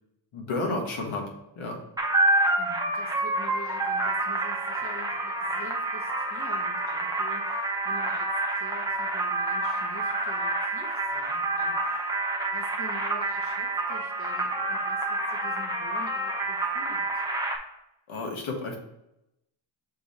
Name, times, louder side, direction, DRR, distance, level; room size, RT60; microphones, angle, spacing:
voice 1, 0.3-1.2 1.5-1.8 18.1-18.8, left 2 dB, 75° left, 1 dB, 1.6 m, -31 dB
sound 1, 2.0-17.6, right 2 dB, 10° right, 0.6 m, -28 dB
voice 2, 2.6-12.1 12.5-17.2, left 2 dB, 25° left, 0 dB, 1.3 m, -46 dB
6.5 x 3.4 x 4.3 m, 0.86 s
wide cardioid pair, 155°, 48 cm